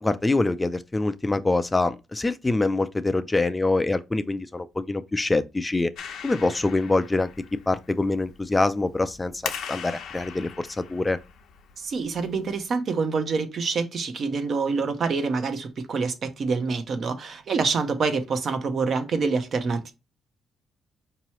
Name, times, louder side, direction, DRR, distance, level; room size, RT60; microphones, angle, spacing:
voice 1, 0.0-5.9 6.2-11.2, left 2 dB, 20° left, 0.3 m, -25 dB
Clapping, 5.9-12.7, left 7 dB, 75° left, 0.7 m, -40 dB
voice 2, 11.8-19.9, right 4 dB, 55° right, 0.7 m, -26 dB
4.6 x 2.9 x 2.9 m
cardioid pair, 90°, 0 cm